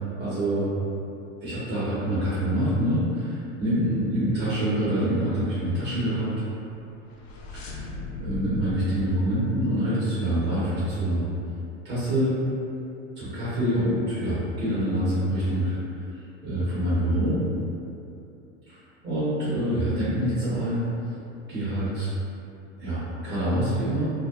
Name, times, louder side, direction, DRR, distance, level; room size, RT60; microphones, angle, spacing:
voice 1, 0.2-0.7 1.4-6.3 7.5-11.3 11.8-12.4 13.2-15.7 16.4-17.4 18.7-18.8 19.0-20.8 21.5-22.1 22.8-24.1, right 1 dB, 30° right, -11 dB, 0.9 m, -26 dB
sound 1, 6.7-10.3, left 2 dB, 70° left, 0.5 m, -39 dB
2.7 x 2.1 x 2.3 m, 2.7 s
hypercardioid pair, 85°, 39 cm